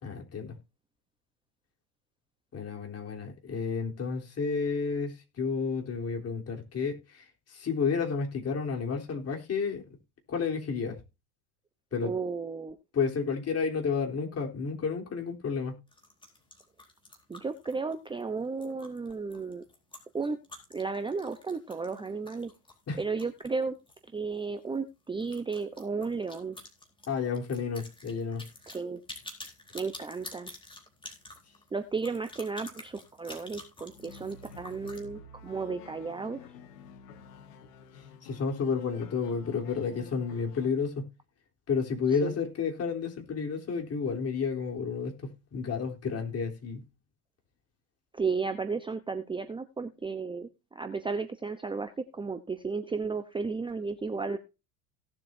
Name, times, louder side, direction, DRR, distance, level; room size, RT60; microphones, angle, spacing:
voice 1, 0.0-0.6 2.5-9.8 10.3-11.0 11.9-12.1 12.9-15.8 22.9-23.0 27.1-28.4 37.9-41.1 41.7-46.8, left 5 dB, 30° left, 1 dB, 3.7 m, -31 dB
voice 2, 12.0-12.8 17.3-19.6 20.1-20.4 20.7-22.5 23.0-23.7 24.1-26.6 28.7-29.0 29.7-30.5 31.7-36.4 42.2-42.3 48.1-54.4, right 4 dB, 10° right, 9 dB, 0.8 m, -34 dB
sound 1, 15.9-24.1 24.3-24.4 24.7-24.8 25.2-35.0, left 2 dB, 10° left, 4.0 m, -49 dB
sound 2, 33.9-40.7, left 5 dB, 75° left, 1.9 m, -50 dB
17.5 x 7.6 x 2.7 m, 0.28 s
hypercardioid pair, 95°, 46 cm